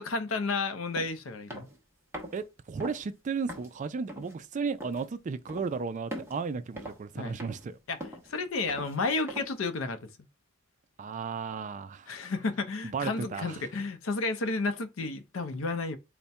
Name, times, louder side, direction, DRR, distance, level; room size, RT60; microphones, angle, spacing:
voice 1, 0.0-1.7 7.2-7.3 7.9-8.0 8.3-10.1 12.1-16.0, left 3 dB, 80° left, 0.6 m, -32 dB
sound 1, 0.9-1.1 1.5-1.8 2.1-2.4 2.8-3.0 3.5-3.7 4.1-4.3 4.8-5.1 5.5-5.7 6.1-6.4 6.8-7.1 7.4-7.7 8.0-8.3 8.7-9.0 9.3-9.6, equal, 10° right, 0.8 m, -41 dB
voice 2, 2.3-7.8 11.0-12.1 12.8-13.6, right 5 dB, 40° right, 0.3 m, -34 dB
4.1 x 2.1 x 3.4 m
head